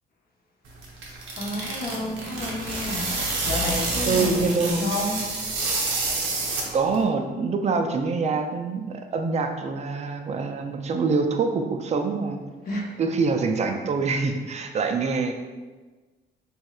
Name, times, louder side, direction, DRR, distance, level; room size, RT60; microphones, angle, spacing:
sound 1, 0.7-7.0, right 2 dB, 75° right, 0.7 m, -28 dB
voice 1, 1.3-5.3 12.7-13.1, left 1 dB, 50° left, -1 dB, 0.7 m, -30 dB
voice 2, 4.0-4.8 6.7-12.4 13.0-15.3, right 4 dB, 35° right, 5 dB, 0.4 m, -25 dB
3.1 x 2.9 x 2.3 m, 1.3 s
cardioid pair, 90°, 20 cm